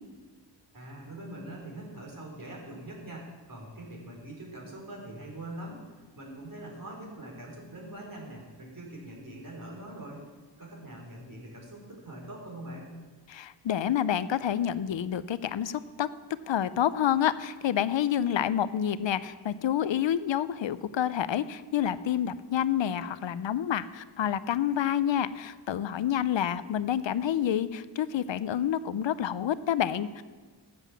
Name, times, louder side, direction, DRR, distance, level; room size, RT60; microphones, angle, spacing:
voice 1, 0.7-10.2 10.6-13.0, right 1 dB, 45° right, -2 dB, 4.0 m, -43 dB
voice 2, 13.3-16.1 16.5-30.2, left 10 dB, 75° left, 15 dB, 0.6 m, -28 dB
13.0 x 8.0 x 7.1 m, 1.4 s
wide cardioid pair, 85°, 45 cm